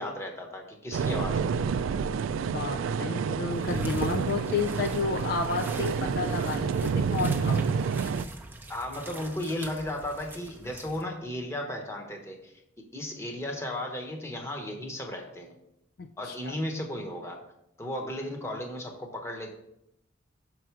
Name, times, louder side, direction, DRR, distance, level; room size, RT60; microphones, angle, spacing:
voice 1, 0.0-1.5 8.7-15.5 16.2-17.4 17.8-19.5, left 1 dB, 15° left, 1 dB, 1.0 m, -35 dB
sound 1, 0.9-8.2, right 6 dB, 80° right, 0.3 m, -29 dB
voice 2, 2.5-7.7 16.0-16.6, left 4 dB, 50° left, 6 dB, 0.3 m, -31 dB
sound 2, 3.5-11.0, right 2 dB, 10° right, 0.6 m, -43 dB
6.2 x 4.7 x 4.5 m, 0.81 s
head